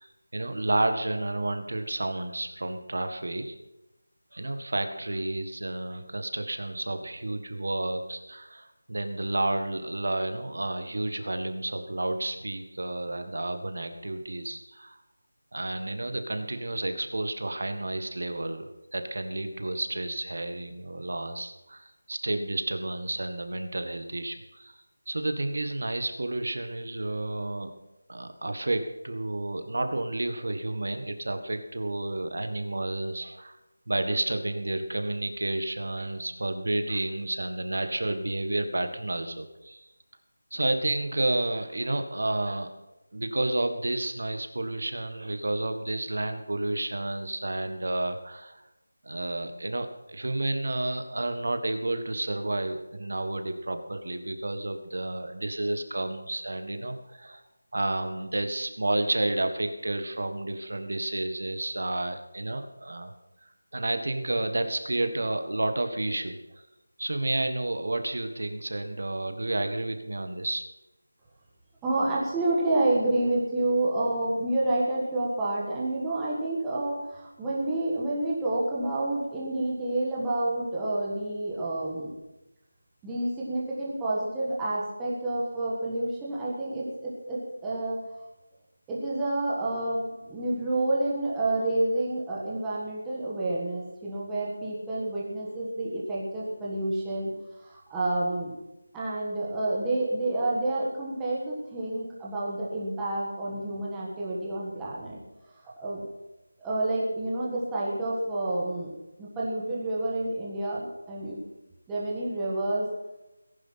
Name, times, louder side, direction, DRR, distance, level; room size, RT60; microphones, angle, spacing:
voice 1, 0.0-3.5 4.3-15.0 15.5-24.8 25.1-27.7 28.1-33.6 33.9-39.9 40.5-42.7 43.1-48.6 49.0-57.4 57.7-63.1 63.7-66.6 67.0-70.6, right 2 dB, 50° right, 8 dB, 1.6 m, -31 dB
voice 2, 71.8-82.1 83.0-88.0 88.9-98.5 98.9-105.2 105.6-106.0 106.6-108.9 109.2-111.4 111.9-112.9, right 2 dB, 5° right, -7 dB, 1.5 m, -29 dB
18.5 x 11.0 x 5.8 m, 0.95 s
figure-of-eight pair, 180°, 0 cm